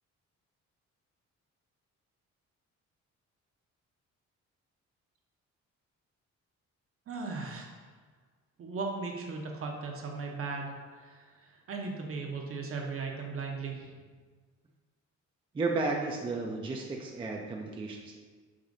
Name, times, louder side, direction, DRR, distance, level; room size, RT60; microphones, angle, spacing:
voice 1, 7.1-7.7 8.6-10.7 11.1-11.2 11.7-13.9, right 4 dB, 45° right, 1 dB, 0.7 m, -37 dB
voice 2, 15.5-18.1, right 3 dB, 20° right, 0 dB, 0.4 m, -33 dB
4.9 x 2.8 x 2.6 m, 1.5 s
cardioid pair, 90°, 30 cm